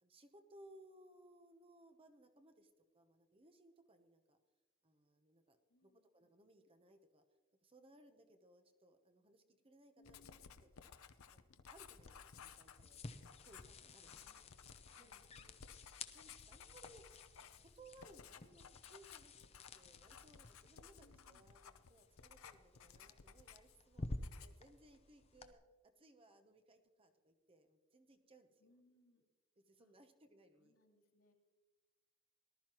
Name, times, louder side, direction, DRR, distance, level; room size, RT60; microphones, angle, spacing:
voice 1, 0.0-4.4 4.8-7.2 7.6-11.0 11.3-14.3 14.9-15.6 16.1-17.1 17.6-19.3 19.7-24.1 24.4-28.7 29.7-30.8, right 1 dB, 25° right, 7 dB, 0.9 m, -65 dB
voice 2, 5.7-6.1 9.9-10.5 14.0-14.5 14.9-15.5 21.0-21.5 28.6-29.2 29.8-29.9 30.6-31.3, left 1 dB, 90° left, -1 dB, 2.7 m, -72 dB
Writing, 10.0-23.8 24.1-24.7, left 7 dB, 70° left, 0.7 m, -59 dB
sound 1, 12.0-25.5, left 2 dB, 30° left, 0.7 m, -53 dB
19.0 x 12.5 x 3.0 m, 1.3 s
head